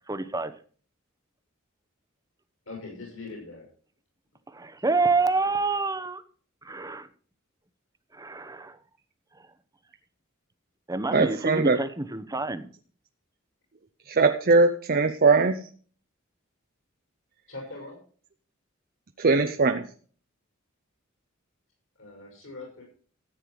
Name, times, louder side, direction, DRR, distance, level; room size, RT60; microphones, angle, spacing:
voice 1, 0.1-0.5 4.5-6.2 6.6-7.1 8.1-8.8 10.9-12.7, right 3 dB, 15° right, 12 dB, 0.9 m, -27 dB
voice 2, 2.7-3.7 17.5-18.0 22.0-22.8, left 3 dB, 70° left, 0 dB, 6.2 m, -41 dB
voice 3, 11.1-11.8 14.1-15.7 19.2-19.9, right 4 dB, 45° right, 7 dB, 0.7 m, -21 dB
14.0 x 8.7 x 4.7 m, 0.43 s
head